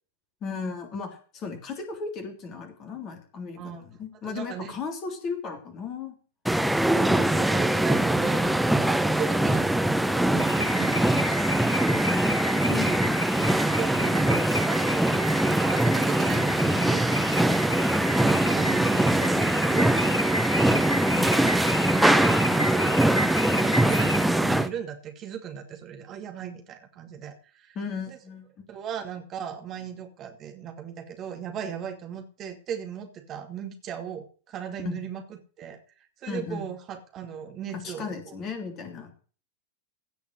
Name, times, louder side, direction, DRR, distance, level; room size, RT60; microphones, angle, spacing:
voice 1, 0.4-6.1 12.1-13.2 21.1-21.8 27.7-28.6 34.8-35.0 36.3-36.7 37.7-39.1, left 5 dB, 30° left, 5 dB, 3.3 m, -36 dB
voice 2, 4.3-4.7 6.8-9.8 10.1-11.6 13.8-21.2 21.9-23.3 23.6-27.8 28.1-28.2 28.7-35.2 35.6-38.3, right 8 dB, 30° right, 4 dB, 2.5 m, -37 dB
sound 1, 6.4-24.7, right 1 dB, 5° right, 0.9 m, -22 dB
Car / Alarm, 10.4-24.5, equal, 85° left, 0.7 m, -34 dB
16.5 x 5.7 x 7.6 m, 0.39 s
figure-of-eight pair, 90°, 0 cm